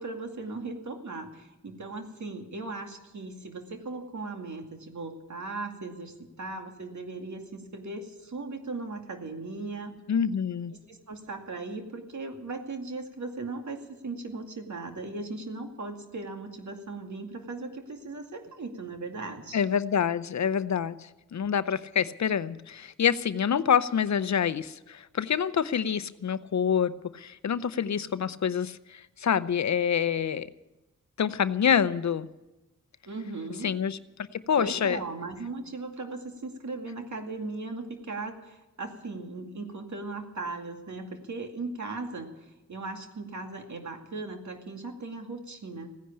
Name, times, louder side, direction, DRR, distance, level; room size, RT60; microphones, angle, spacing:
voice 1, 0.0-9.9 10.9-19.6 33.1-33.7 34.6-45.9, right 3 dB, 65° right, 4 dB, 2.3 m, -38 dB
voice 2, 10.1-10.7 19.5-30.5 31.2-32.3 33.6-34.0 34.3-35.0, left 7 dB, 65° left, 15 dB, 0.7 m, -27 dB
16.0 x 10.0 x 8.6 m, 1.0 s
cardioid pair, 45°, 31 cm